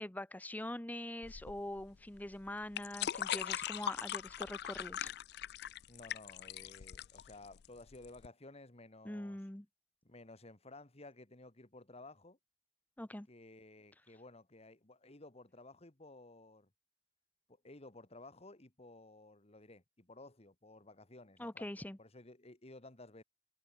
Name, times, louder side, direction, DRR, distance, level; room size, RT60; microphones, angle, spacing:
voice 1, 0.0-5.1 9.0-9.7 13.0-13.3 21.4-22.0, left 1 dB, 10° left, 0.8 m, -43 dB
sound 1, 1.2-8.3, left 10 dB, 60° left, 0.4 m, -41 dB
voice 2, 5.9-9.4 10.0-12.4 13.3-16.7 17.6-23.2, left 2 dB, 35° left, 2.1 m, -55 dB
head